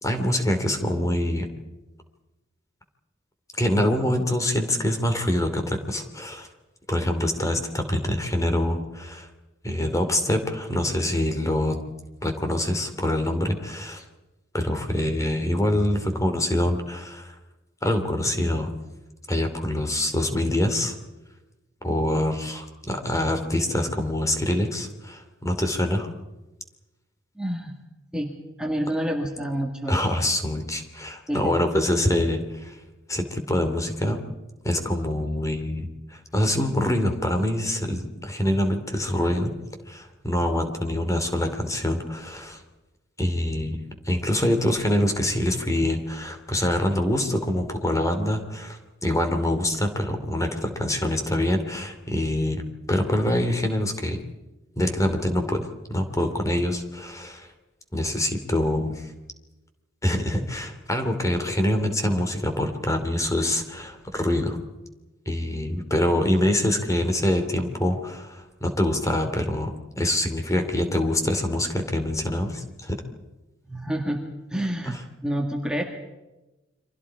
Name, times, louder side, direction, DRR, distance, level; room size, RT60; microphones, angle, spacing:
voice 1, 0.0-1.5 3.6-6.5 6.9-9.3 9.6-11.8 12.2-14.0 14.5-17.3 17.8-18.7 19.3-20.9 21.8-26.1 29.9-32.8 33.1-34.2 34.6-39.5 39.9-42.6 43.2-43.8 44.1-52.6 52.9-54.2 54.8-57.5 57.9-59.1 60.0-64.6 65.3-73.0 74.8-74.9, left 1 dB, 15° left, 6 dB, 2.9 m, -25 dB
voice 2, 27.4-27.7 28.1-28.3 28.6-30.0 31.3-31.6 73.7-74.2 74.5-75.8, right 1 dB, 5° right, 1 dB, 2.0 m, -28 dB
30.0 x 24.5 x 4.9 m, 1.1 s
head